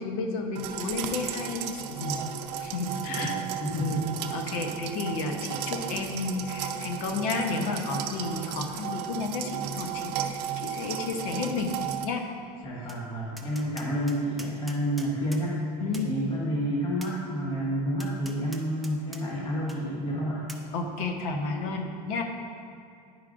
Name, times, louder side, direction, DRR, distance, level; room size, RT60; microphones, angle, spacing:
voice 1, 0.0-2.3 2.6-3.3 3.8-4.0 4.3-11.7 12.0-12.2 15.8-16.2 20.7-22.2, left 3 dB, 70° left, 3 dB, 0.9 m, -32 dB
sound 1, 0.6-12.1, right 9 dB, 75° right, 0.5 m, -34 dB
voice 2, 3.1-4.1 12.6-15.6 16.0-20.4, equal, 25° left, -5 dB, 1.0 m, -30 dB
Tap, 12.9-13.0 13.4-15.4 15.9-16.1 17.0-17.1 18.0-19.2 19.7-19.8 20.5-20.6, right 1 dB, ahead, 0.4 m, -44 dB
10.5 x 4.8 x 2.5 m, 2.4 s
supercardioid pair, 130°, 21 cm